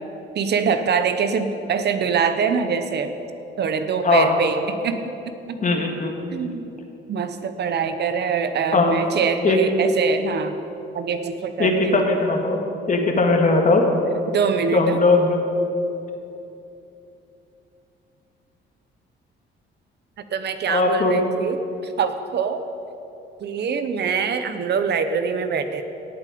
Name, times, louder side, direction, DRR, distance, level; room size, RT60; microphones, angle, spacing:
voice 1, 0.3-3.1 3.6-5.0 5.5-5.6 6.3-6.7 7.1-10.6 10.9-12.0 14.3-15.0 20.3-22.6 23.4-25.8, right 6 dB, 60° right, 9 dB, 0.8 m, -24 dB
voice 2, 4.0-4.3 5.6-6.1 8.7-8.9 9.4-9.6 11.6-12.6 12.9-13.8 14.7-15.4 20.7-21.2, left 3 dB, 40° left, 3 dB, 1.7 m, -19 dB
17.5 x 7.7 x 5.1 m, 2.9 s
cardioid pair, 90°, 20 cm